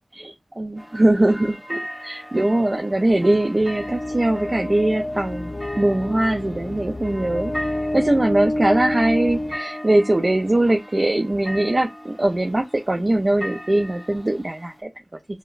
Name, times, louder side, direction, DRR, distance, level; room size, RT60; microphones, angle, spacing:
voice 1, 0.1-7.5 7.9-14.9, right 1 dB, 50° right, 0.4 m, -21 dB
sound 1, 0.8-14.8, equal, 15° right, 1.0 m, -39 dB
sound 2, 3.6-10.5, left 1 dB, 40° left, 0.4 m, -29 dB
4.6 x 2.1 x 2.4 m
wide cardioid pair, 50°, 0 cm